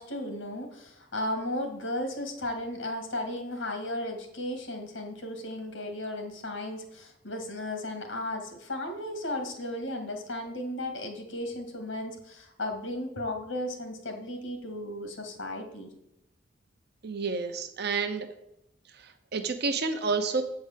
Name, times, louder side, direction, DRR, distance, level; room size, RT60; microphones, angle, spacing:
voice 1, 0.0-15.9, left 1 dB, 75° left, 5 dB, 1.9 m, -35 dB
voice 2, 17.0-18.3 19.3-20.4, right 4 dB, 55° right, 7 dB, 0.7 m, -29 dB
8.5 x 4.8 x 7.4 m, 0.81 s
head